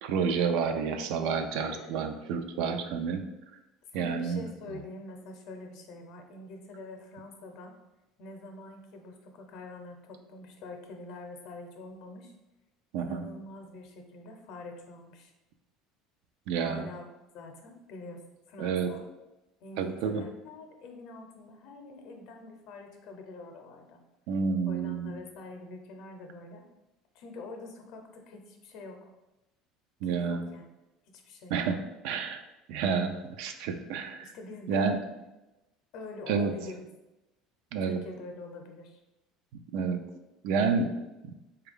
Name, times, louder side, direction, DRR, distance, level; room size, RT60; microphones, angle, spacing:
voice 1, 0.0-3.3 3.9-4.4 12.9-13.3 16.5-16.9 18.6-18.9 19.8-20.2 24.3-25.1 30.0-30.4 31.5-32.4 32.7-34.3 34.7-35.0 36.3-36.5 37.7-38.0 39.7-40.0 40.4-41.0 41.2-41.3, right 5 dB, 75° right, 7 dB, 0.3 m, -29 dB
voice 2, 1.6-2.1 3.9-7.8 8.2-12.3 13.0-15.3 16.5-17.1 17.3-19.1 19.6-24.0 24.7-26.6 27.1-29.1 30.0-30.7 31.1-31.6 34.2-34.9 35.9-36.9 37.8-39.0, left 2 dB, 65° left, 4 dB, 0.6 m, -45 dB
3.3 x 2.3 x 3.5 m, 1.0 s
cardioid pair, 130°, 0 cm